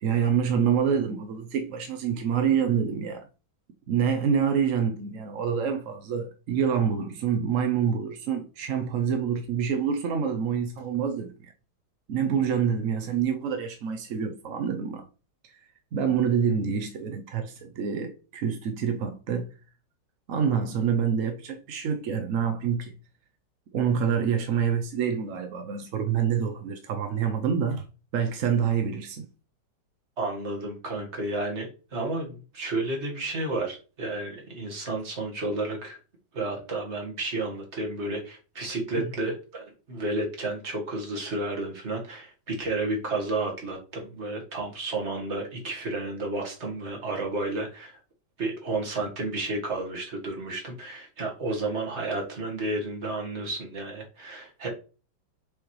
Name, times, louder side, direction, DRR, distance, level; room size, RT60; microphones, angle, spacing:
voice 1, 0.0-3.3 3.9-11.3 12.1-15.1 15.9-19.5 20.3-22.9 23.7-27.8 28.1-29.2 38.9-39.1, right 7 dB, 70° right, 0.7 m, -26 dB
voice 2, 30.2-36.0 36.3-48.0 48.4-54.7, right 2 dB, 35° right, 1.8 m, -31 dB
6.9 x 5.3 x 3.1 m
omnidirectional pair, 2.2 m